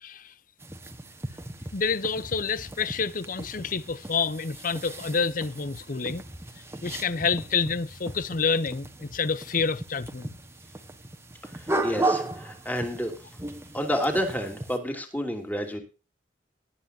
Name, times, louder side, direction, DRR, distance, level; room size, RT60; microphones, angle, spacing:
sound 1, 0.6-14.8, right 2 dB, 15° right, 1.4 m, -36 dB
voice 1, 1.7-6.2 6.8-10.3, left 5 dB, 50° left, 0.7 m, -28 dB
voice 2, 11.5-13.1 13.7-15.8, equal, 10° left, 3.0 m, -29 dB
19.5 x 10.0 x 2.8 m
head